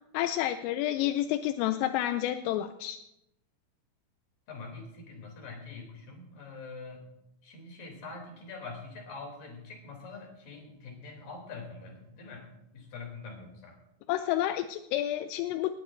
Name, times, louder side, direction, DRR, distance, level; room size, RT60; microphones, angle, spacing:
voice 1, 0.1-3.0 14.1-15.8, left 13 dB, 85° left, 9 dB, 3.2 m, -29 dB
voice 2, 4.5-7.0 7.4-12.5 12.7-13.8, left 4 dB, 45° left, 1 dB, 4.5 m, -44 dB
19.0 x 17.5 x 2.7 m, 0.86 s
omnidirectional pair, 5.8 m